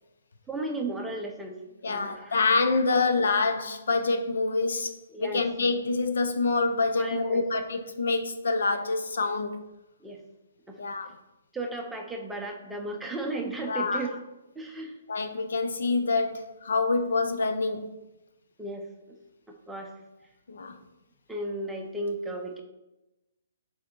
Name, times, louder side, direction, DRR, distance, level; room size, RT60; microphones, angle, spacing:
voice 1, 0.5-1.6 1.9-2.4 5.1-5.4 7.0-7.4 10.0-10.2 10.7-10.8 11.5-14.2 14.6-14.9 18.6-18.8 19.7-19.9 21.3-22.6, right 2 dB, 5° right, 1 dB, 0.6 m, -34 dB
voice 2, 1.8-9.6 10.8-11.1 13.6-14.0 15.1-17.9 20.5-20.8, left 3 dB, 80° left, 7 dB, 0.8 m, -26 dB
6.0 x 4.3 x 4.5 m, 1.0 s
hypercardioid pair, 165°, 0 cm